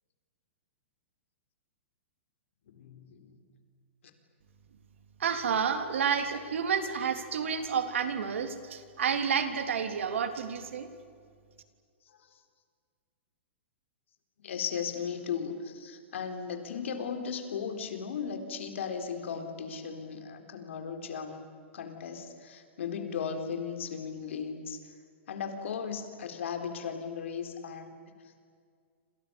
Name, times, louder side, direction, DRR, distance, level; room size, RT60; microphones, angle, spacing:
voice 1, 2.7-3.4 12.1-12.4 14.4-21.5 21.7-24.9 25.3-28.0, left 6 dB, 75° left, 6 dB, 4.1 m, -36 dB
voice 2, 5.2-10.9, right 7 dB, 75° right, 8 dB, 3.3 m, -30 dB
28.0 x 28.0 x 7.1 m, 2.1 s
hypercardioid pair, 145°, 7 cm